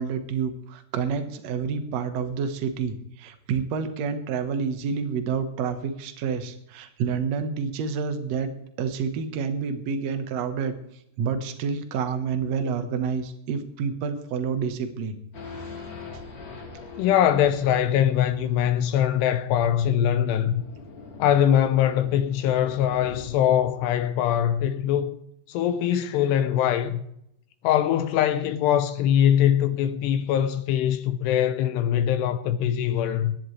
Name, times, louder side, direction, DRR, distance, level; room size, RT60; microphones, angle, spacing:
voice 1, 0.0-8.5 8.8-10.8 11.2-15.2 15.6-15.7, right 6 dB, 70° right, 1.6 m, -28 dB
Race car auto racing / Idling / Accelerating revving vroom, 15.3-23.9, left 4 dB, 55° left, 4.0 m, -43 dB
voice 2, 17.0-20.6 21.2-25.2 25.5-27.1 27.6-33.4, left 10 dB, 80° left, 2.8 m, -22 dB
24.0 x 10.5 x 3.2 m
omnidirectional pair, 4.9 m